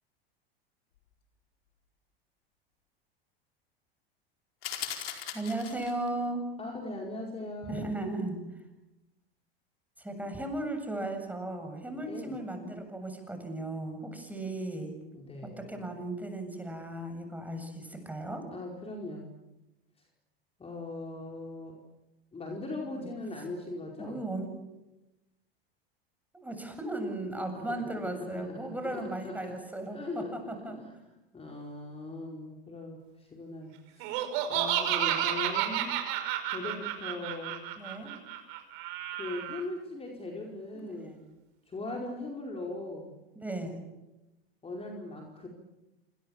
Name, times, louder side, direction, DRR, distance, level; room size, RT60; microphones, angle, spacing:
sound 1, 4.6-6.1, left 10 dB, 70° left, 4.6 m, -38 dB
voice 1, 5.3-6.4 7.7-8.6 10.0-15.0 15.6-18.4 22.9-23.1 24.0-24.5 26.3-30.8 37.8-38.1 40.7-41.0 43.4-43.7, right 2 dB, 5° right, 6 dB, 7.8 m, -36 dB
voice 2, 6.6-7.9 11.9-12.4 15.1-15.7 18.5-19.3 20.6-21.8 22.3-24.2 27.5-29.5 29.9-30.3 30.6-30.8 31.3-34.1 34.5-37.7 39.2-41.3 41.7-43.1 44.6-45.5, left 2 dB, 20° left, 0 dB, 5.0 m, -40 dB
Laughter, 34.0-39.6, right 11 dB, 60° right, 5.7 m, -31 dB
28.5 x 26.5 x 7.3 m, 1.0 s
hypercardioid pair, 95°, 30 cm